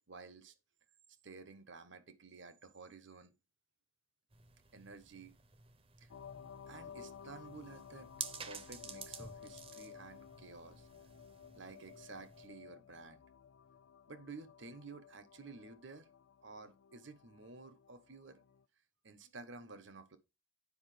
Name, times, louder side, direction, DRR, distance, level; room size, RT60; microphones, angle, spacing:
voice 1, 0.1-0.5 1.2-3.3 4.7-5.4 6.0-6.1 6.7-10.9 11.5-13.2 14.1-16.1 16.4-18.4 19.0-20.2, right 4 dB, 65° right, 1.2 m, -53 dB
sound 1, 4.3-12.5, right 6 dB, 30° right, 0.9 m, -51 dB
sound 2, 6.1-18.6, left 7 dB, 80° left, 0.4 m, -55 dB
9.9 x 5.2 x 5.0 m
head